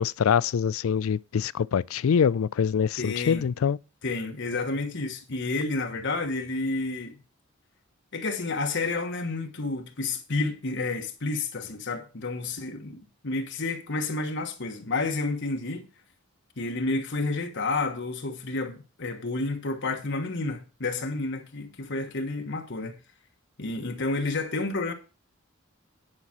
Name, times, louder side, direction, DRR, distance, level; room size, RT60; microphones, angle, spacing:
voice 1, 0.0-3.8, left 7 dB, 80° left, 0.4 m, -24 dB
voice 2, 3.0-3.4 4.0-7.2 8.1-15.9 16.6-23.0 23.6-24.9, left 3 dB, 60° left, 1.3 m, -30 dB
9.9 x 5.8 x 6.0 m
head